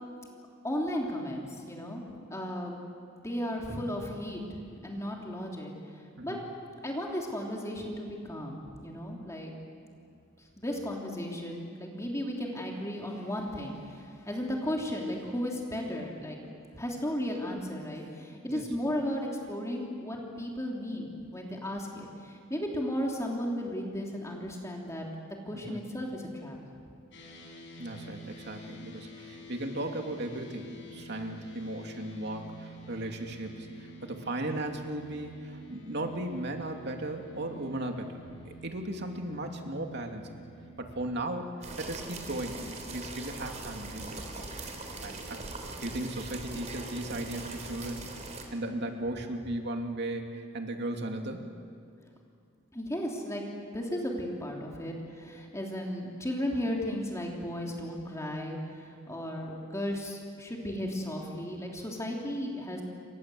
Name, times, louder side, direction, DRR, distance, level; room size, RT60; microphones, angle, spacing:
voice 1, 0.6-2.8 3.2-6.4 6.8-9.5 10.6-16.4 16.7-25.1 25.4-26.6 52.7-53.4 53.7-62.8, equal, 15° left, -1 dB, 3.1 m, -35 dB
sound 1, 27.1-41.0, right 1 dB, 65° left, 6.2 m, -49 dB
voice 2, 27.8-38.2 38.5-40.3 40.8-44.5 45.0-45.5 45.8-48.0 48.5-51.4, right 1 dB, 55° right, 3 dB, 2.7 m, -36 dB
sound 2, 41.6-48.4, right 2 dB, 35° right, 3.7 m, -41 dB
29.5 x 24.5 x 7.9 m, 2.3 s
head